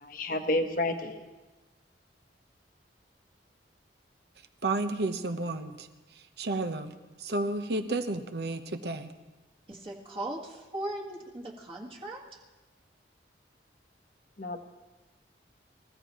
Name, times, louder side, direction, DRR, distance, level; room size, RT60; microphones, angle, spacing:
voice 1, 0.0-1.2 14.4-14.7, left 1 dB, 50° left, 6 dB, 1.1 m, -30 dB
voice 2, 4.6-5.9 6.1-9.1, right 2 dB, 65° right, 7 dB, 1.0 m, -32 dB
voice 3, 9.7-12.4, right 1 dB, 30° right, -3 dB, 1.6 m, -38 dB
25.0 x 15.5 x 3.1 m, 1.2 s
head